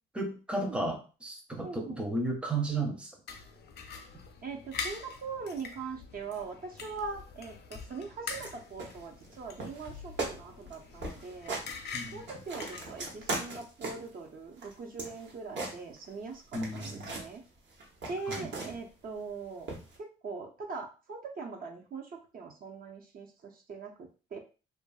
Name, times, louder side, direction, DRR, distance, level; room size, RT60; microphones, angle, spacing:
voice 1, 0.1-3.1 11.9-12.2 16.5-17.2 18.3-18.5, right 2 dB, 5° right, 2 dB, 0.6 m, -34 dB
voice 2, 1.6-2.0 4.4-11.6 12.1-17.4 18.1-19.7 20.0-24.4, right 4 dB, 45° right, 1 dB, 0.6 m, -41 dB
sound 1, 3.3-13.3, left 5 dB, 55° left, 0.5 m, -44 dB
sound 2, 8.3-8.5 8.8-9.3 9.6-9.9 10.2-10.4 10.7-10.8 11.0-11.7 12.1-14.1 14.6-16.2 16.5-17.3 17.7-18.9 19.7-20.0, right 3 dB, 65° right, 0.9 m, -38 dB
2.6 x 2.5 x 2.3 m, 0.34 s
cardioid pair, 90°, 20 cm